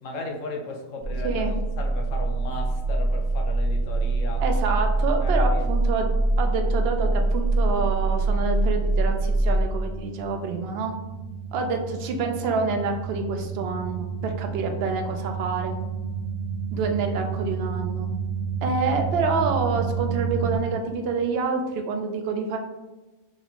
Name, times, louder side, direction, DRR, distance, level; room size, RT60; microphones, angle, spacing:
voice 1, 0.0-4.4 5.2-5.7, left 2 dB, 65° left, 2 dB, 1.0 m, -36 dB
sound 1, 1.0-20.6, right 3 dB, 50° right, 0.9 m, -26 dB
voice 2, 1.2-1.6 4.4-6.1 6.4-10.9 11.5-15.7 16.7-18.1 18.6-22.6, right 4 dB, 70° right, 4 dB, 0.6 m, -27 dB
4.1 x 2.9 x 2.8 m, 1.2 s
omnidirectional pair, 1.5 m